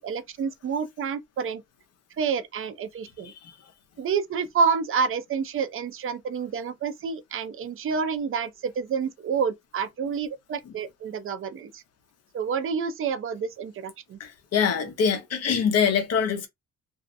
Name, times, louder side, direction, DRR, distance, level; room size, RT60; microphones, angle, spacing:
voice 1, 0.0-1.6 2.2-3.3 4.0-11.8 12.3-14.2, right 6 dB, 45° right, 0.5 m, -28 dB
voice 2, 14.2-16.5, left 7 dB, 55° left, 0.8 m, -24 dB
2.6 x 2.0 x 2.5 m
cardioid pair, 90°, 30 cm